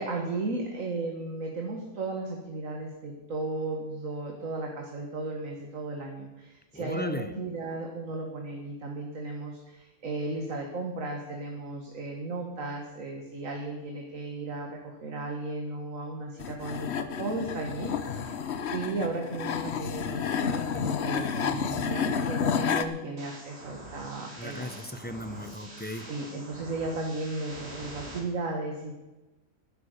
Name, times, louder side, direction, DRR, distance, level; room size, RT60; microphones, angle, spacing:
voice 1, 0.0-18.4 18.7-25.0 26.0-28.9, right 2 dB, 65° right, 1 dB, 2.0 m, -35 dB
voice 2, 6.7-7.3 24.4-26.1, left 1 dB, 10° left, 9 dB, 0.5 m, -36 dB
sound 1, 16.4-22.9, left 7 dB, 55° left, 1.0 m, -30 dB
sound 2, 23.2-28.2, right 1 dB, 50° right, 2.6 m, -45 dB
12.0 x 10.5 x 6.7 m, 1.1 s
omnidirectional pair, 1.5 m